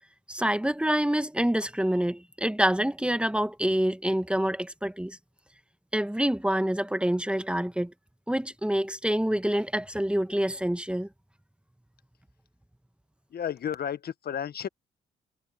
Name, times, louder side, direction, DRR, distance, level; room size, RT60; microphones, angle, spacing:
voice 1, 0.3-5.2 5.9-7.9 8.3-11.1, right 1 dB, 5° right, 1.5 m, -27 dB
voice 2, 13.3-14.7, left 9 dB, 55° left, 1.4 m, -32 dB
hypercardioid pair, 50°, 19 cm